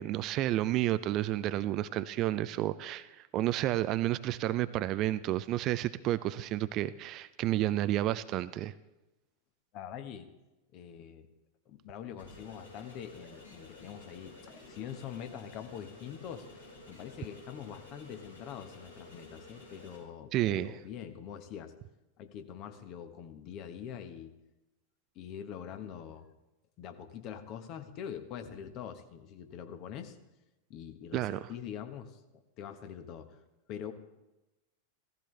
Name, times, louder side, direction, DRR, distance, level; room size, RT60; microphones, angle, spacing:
voice 1, 0.0-8.7 20.3-20.7 31.1-31.4, right 14 dB, 35° right, 15 dB, 0.4 m, -31 dB
voice 2, 9.7-10.3 10.7-11.3 11.7-21.7 22.2-24.3 25.1-26.3 26.8-30.2 30.7-33.4 33.7-33.9, left 8 dB, 40° left, 7 dB, 1.3 m, -44 dB
sound 1, 12.2-20.0, left 2 dB, 80° left, 5.8 m, -52 dB
16.5 x 15.0 x 3.3 m, 0.99 s
figure-of-eight pair, 90°, 0 cm